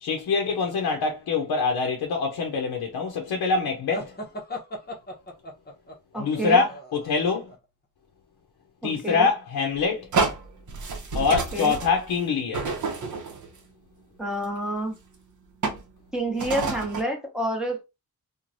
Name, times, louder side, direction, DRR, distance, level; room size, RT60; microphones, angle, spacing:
voice 1, 0.0-4.1 6.2-7.5 8.8-10.1 11.1-12.7, left 5 dB, 85° left, 0.6 m, -25 dB
sound 1, 3.9-7.6, left 1 dB, 25° left, 0.7 m, -38 dB
voice 2, 6.1-6.6 8.8-9.3 11.5-11.7 14.2-14.9 16.1-17.8, right 1 dB, ahead, 0.9 m, -28 dB
sound 2, 9.8-9.9 10.1-13.6 14.4-14.5 15.6-15.9 16.4-17.0, right 4 dB, 55° right, 0.7 m, -29 dB
3.0 x 2.2 x 2.5 m
wide cardioid pair, 120°, 36 cm